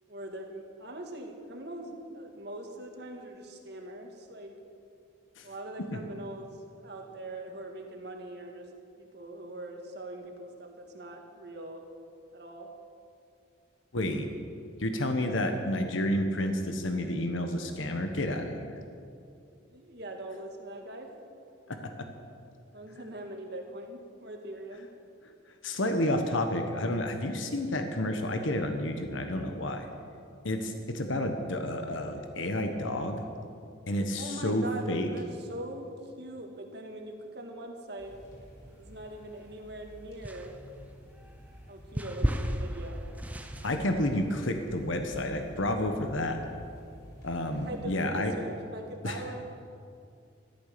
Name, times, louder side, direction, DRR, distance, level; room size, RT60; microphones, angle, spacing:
voice 1, 0.1-4.6 5.4-8.7 9.0-11.8 12.3-12.7 19.7-21.2 22.7-24.9 34.1-38.2 38.8-40.6 41.7-43.0 47.5-49.4, right 1 dB, 55° right, 2 dB, 1.8 m, -42 dB
voice 2, 13.9-14.3 14.8-18.8 21.7-22.1 25.2-25.3 25.6-29.9 30.4-33.2 33.9-35.1 43.6-46.4 47.2-48.3 49.0-49.2, left 1 dB, 80° left, 6 dB, 1.2 m, -30 dB
sound 1, 38.0-47.8, equal, 50° left, 4.3 m, -50 dB
sound 2, 38.8-39.7 40.2-45.5, equal, 5° right, 0.6 m, -35 dB
14.0 x 12.0 x 6.8 m, 2.5 s
head